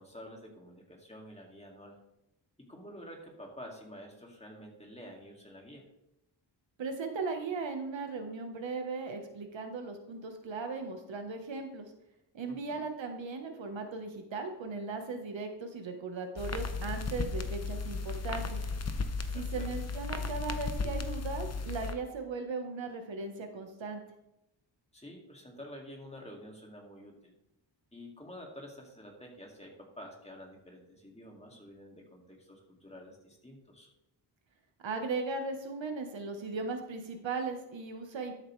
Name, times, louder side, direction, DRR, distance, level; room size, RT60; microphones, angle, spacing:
voice 1, 0.0-2.0 2.6-5.9 12.5-12.8 19.3-19.7 24.9-27.3 27.9-33.9, equal, 15° left, 0 dB, 2.4 m, -49 dB
voice 2, 6.8-11.9 12.3-18.6 19.3-24.0 34.8-38.3, right 4 dB, 85° right, 5 dB, 1.3 m, -37 dB
sound 1, 16.4-21.9, left 4 dB, 35° left, 0.8 m, -35 dB
12.5 x 7.3 x 3.3 m, 0.85 s
wide cardioid pair, 95°, 44 cm